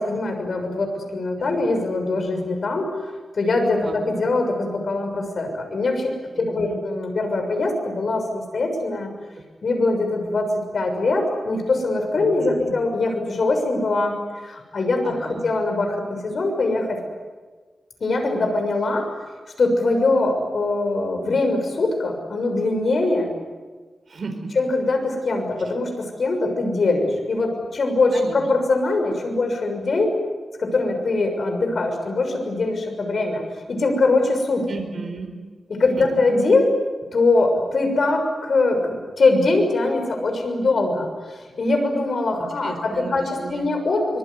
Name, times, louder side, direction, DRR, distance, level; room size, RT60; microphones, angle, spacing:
voice 1, 0.0-2.9 3.3-9.1 9.6-14.2 14.4-17.0 18.0-19.1 19.6-23.3 24.5-30.2 30.6-33.4 33.7-34.7 35.7-36.7 37.1-44.2, left 2 dB, 55° left, 4 dB, 6.4 m, -22 dB
voice 2, 6.4-6.8 9.4-9.5 12.4-12.7 15.0-15.4 24.1-24.5 28.1-28.4 34.7-35.3 36.0-36.1 42.4-43.7, right 4 dB, 50° right, 4 dB, 4.7 m, -34 dB
24.5 x 23.0 x 9.7 m, 1.4 s
wide cardioid pair, 135°, 0 cm